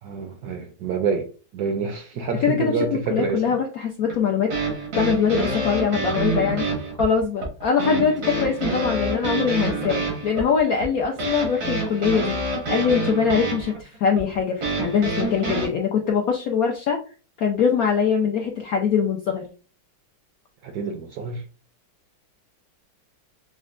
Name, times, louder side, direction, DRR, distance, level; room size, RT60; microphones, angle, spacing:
voice 1, 0.0-3.6 20.6-21.4, right 5 dB, 70° right, 0.9 m, -27 dB
voice 2, 2.4-2.7 3.1-4.5 5.0-6.6 7.0-12.4 12.7-17.0 17.4-19.5, left 6 dB, 75° left, 0.8 m, -22 dB
sound 1, 4.1-15.7, right 2 dB, 90° right, 2.4 m, -27 dB
6.1 x 2.1 x 2.5 m
omnidirectional pair, 2.1 m